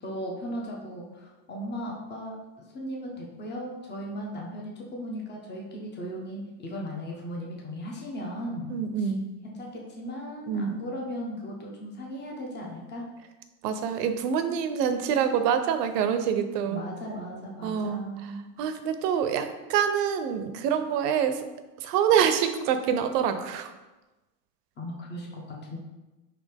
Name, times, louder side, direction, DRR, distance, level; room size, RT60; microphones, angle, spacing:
voice 1, 0.0-2.3 2.7-9.1 9.4-13.1 16.6-18.5 24.8-25.8, equal, 20° left, -2 dB, 0.9 m, -37 dB
voice 2, 8.7-9.3 10.5-10.8 13.6-16.8 17.6-18.0 18.6-21.4 21.8-23.7, right 8 dB, 80° right, 8 dB, 0.6 m, -26 dB
4.1 x 2.9 x 3.4 m, 1.1 s
supercardioid pair, 115°, 47 cm